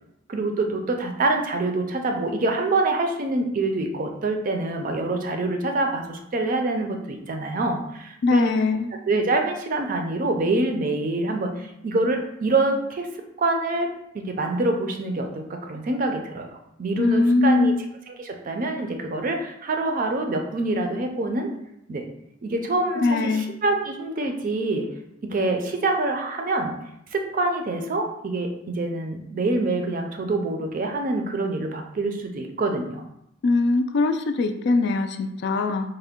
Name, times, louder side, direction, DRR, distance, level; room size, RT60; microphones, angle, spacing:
voice 1, 0.3-8.6 9.1-13.1 13.4-17.7 18.1-21.5 21.9-22.1 22.4-24.9 25.2-26.8 27.1-33.0, right 2 dB, 45° right, 4 dB, 0.4 m, -26 dB
voice 2, 8.2-8.9 17.0-17.8 23.0-23.5 33.4-35.9, left 3 dB, 60° left, 7 dB, 0.3 m, -21 dB
4.4 x 2.1 x 3.5 m, 0.80 s
head